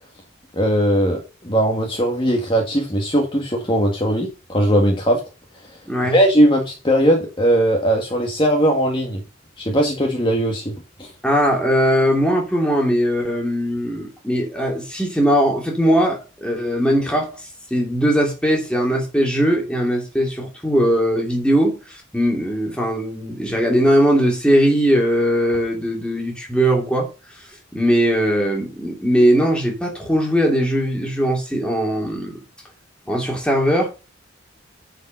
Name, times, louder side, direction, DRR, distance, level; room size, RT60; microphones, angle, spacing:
voice 1, 0.5-5.2 6.1-9.2 9.6-10.7 11.0-11.1, right 1 dB, 25° left, 1.5 m, -19 dB
voice 2, 5.9-6.2 11.2-17.4 17.7-27.1 27.7-32.4 33.1-33.9, equal, 5° left, 2.7 m, -19 dB
10.0 x 5.2 x 5.2 m
head